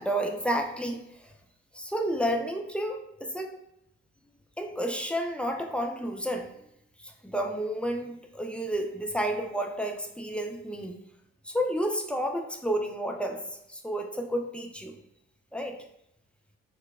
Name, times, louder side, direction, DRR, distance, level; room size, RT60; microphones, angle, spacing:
voice 1, 0.0-1.3 1.7-3.5 4.6-6.5 7.0-10.9 11.4-13.4 13.7-15.0 15.5-15.8, equal, 5° left, 2 dB, 0.3 m, -31 dB
4.4 x 2.2 x 2.4 m, 0.82 s
figure-of-eight pair, 45°, 34 cm